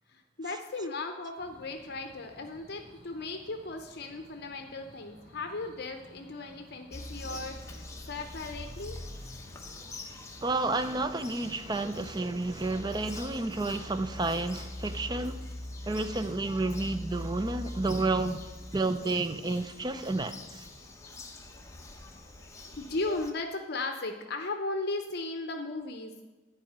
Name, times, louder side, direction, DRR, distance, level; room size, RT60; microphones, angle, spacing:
voice 1, 0.1-9.0 22.5-26.2, left 2 dB, 55° left, 0.7 m, -36 dB
sound 1, 1.4-21.0, equal, 50° right, 3.3 m, -56 dB
Bird vocalization bird call bird song, 6.9-23.3, left 1 dB, 15° left, 0.9 m, -43 dB
voice 2, 10.4-15.4 15.9-18.4 18.7-20.6, right 2 dB, 20° right, 0.5 m, -30 dB
11.0 x 4.8 x 7.9 m
head